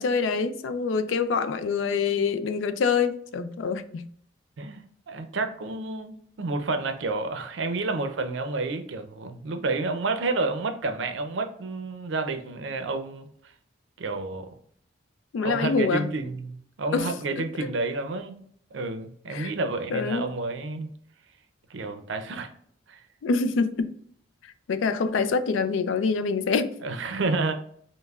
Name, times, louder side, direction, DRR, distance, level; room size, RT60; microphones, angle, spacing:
voice 1, 0.0-4.1 15.3-16.1 16.9-17.1 17.6-17.7 19.3-19.5 19.9-20.3 23.2-23.9 24.7-26.7, left 5 dB, 90° left, 0.3 m, -25 dB
voice 2, 4.6-13.3 14.0-14.5 15.4-18.4 18.7-20.9 21.7-22.5 22.9-23.0 26.8-27.5, right 3 dB, 80° right, 0.5 m, -30 dB
5.3 x 2.1 x 2.3 m
head